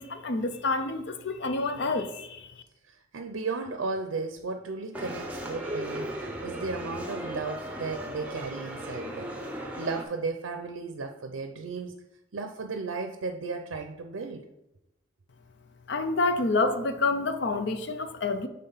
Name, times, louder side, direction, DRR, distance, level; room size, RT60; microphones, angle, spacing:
voice 1, 0.0-2.5 15.9-18.5, left 3 dB, 55° left, 0.5 m, -28 dB
voice 2, 2.8-9.3 9.8-12.0 12.3-14.4, right 4 dB, 80° right, 0.5 m, -35 dB
sound 1, 4.9-10.0, equal, 5° right, 0.7 m, -36 dB
5.7 x 3.7 x 5.5 m
head